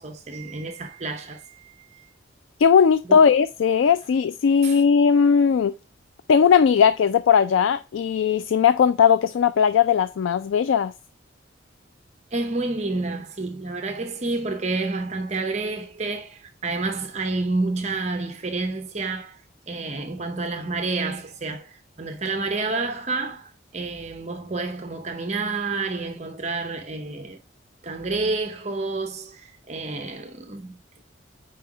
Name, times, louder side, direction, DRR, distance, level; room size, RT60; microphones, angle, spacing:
voice 1, 0.0-2.1 3.0-3.3 4.6-4.8 12.3-19.4 19.7-27.4 27.8-31.0, right 3 dB, 35° right, 0.7 m, -29 dB
voice 2, 2.6-5.7 6.3-10.9, left 7 dB, 85° left, 0.3 m, -18 dB
5.5 x 4.7 x 4.8 m
head